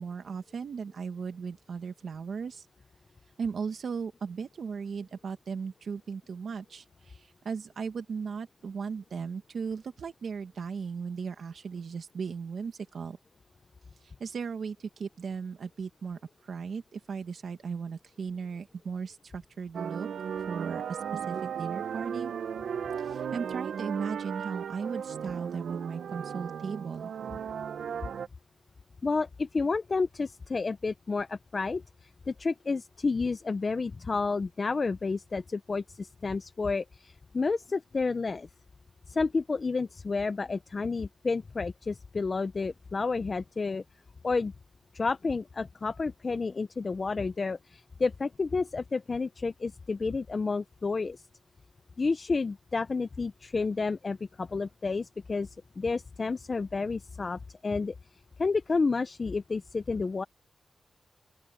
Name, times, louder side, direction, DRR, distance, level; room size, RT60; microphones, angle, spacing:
voice 1, 0.0-2.7 3.4-13.2 14.0-20.1 20.3-22.3 23.0-27.1, right 5 dB, 65° right, 1.5 m, -37 dB
sound 1, 19.7-28.3, right 7 dB, 80° right, 0.6 m, -36 dB
voice 2, 29.0-38.5 39.1-43.8 44.2-44.5 44.9-51.3 52.0-55.5 55.8-57.9 58.4-60.2, left 4 dB, 35° left, 0.5 m, -30 dB
open air
wide cardioid pair, 125°, 0 cm